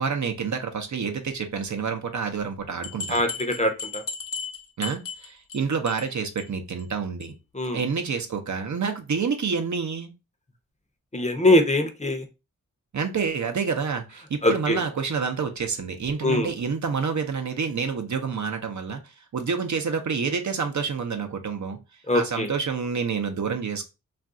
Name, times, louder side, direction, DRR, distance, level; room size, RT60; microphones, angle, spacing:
voice 1, 0.0-3.2 4.8-7.3 7.7-10.1 12.9-21.8 22.1-23.9, right 5 dB, 55° right, 0.6 m, -28 dB
sound 1, 2.8-5.6 5.9-6.1 6.4-6.5 6.8-6.9 7.2-7.3, left 5 dB, 65° left, 0.7 m, -35 dB
voice 2, 3.1-4.0 7.5-7.8 11.1-12.2 14.4-14.8 16.2-16.5 22.1-22.5, left 1 dB, 20° left, 0.7 m, -22 dB
2.5 x 2.3 x 3.7 m
cardioid pair, 55°, 34 cm